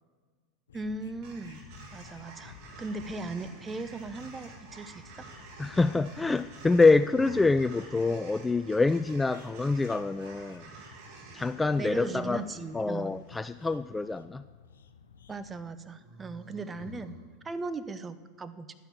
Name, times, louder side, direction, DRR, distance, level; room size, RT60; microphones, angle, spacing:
sound 1, 0.7-15.6, left 8 dB, 80° left, 0.7 m, -55 dB
voice 1, 0.7-1.6 1.9-5.3 11.8-13.1 15.3-17.2 17.4-18.7, right 3 dB, 20° right, 12 dB, 0.8 m, -38 dB
sound 2, 1.2-13.5, right 3 dB, 55° right, 2.8 m, -50 dB
sound 3, 4.3-4.8 6.9-7.8 11.6-12.7 16.0-17.2, left 1 dB, 40° right, 3.0 m, -49 dB
voice 2, 5.6-10.7 11.3-12.4 12.7-14.4, left 3 dB, 10° left, 13 dB, 0.3 m, -26 dB
11.5 x 9.8 x 7.1 m, 1.5 s
hypercardioid pair, 90°, 0 cm